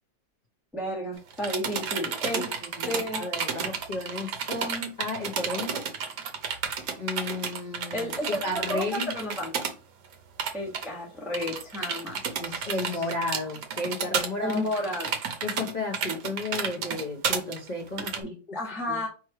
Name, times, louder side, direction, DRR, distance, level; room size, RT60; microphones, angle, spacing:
voice 1, 0.7-2.6 2.9-3.2 7.9-9.5 10.5-12.9 14.4-15.1 18.0-19.1, left 1 dB, ahead, 1.0 m, -32 dB
sound 1, 1.2-9.7 10.0-10.1 10.4-10.9 11.3-18.2, right 6 dB, 60° right, 1.1 m, -32 dB
voice 2, 2.4-5.9 7.0-9.1 12.4-14.6 15.4-18.6 18.9-19.0, left 2 dB, 60° left, 0.4 m, -33 dB
3.4 x 3.1 x 4.5 m
omnidirectional pair, 2.1 m